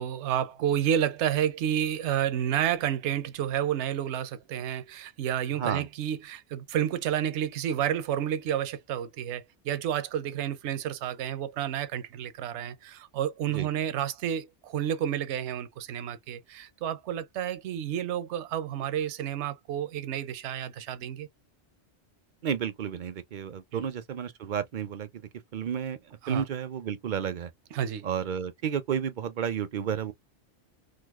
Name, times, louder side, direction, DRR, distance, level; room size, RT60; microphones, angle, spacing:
voice 1, 0.0-21.3 23.7-23.9 26.2-26.4 27.7-28.0, right 10 dB, 80° right, 0.9 m, -30 dB
voice 2, 22.4-25.2 25.5-26.0 26.3-27.5 28.0-30.1, right 8 dB, 55° right, 0.5 m, -31 dB
4.0 x 2.5 x 2.3 m
omnidirectional pair, 1.2 m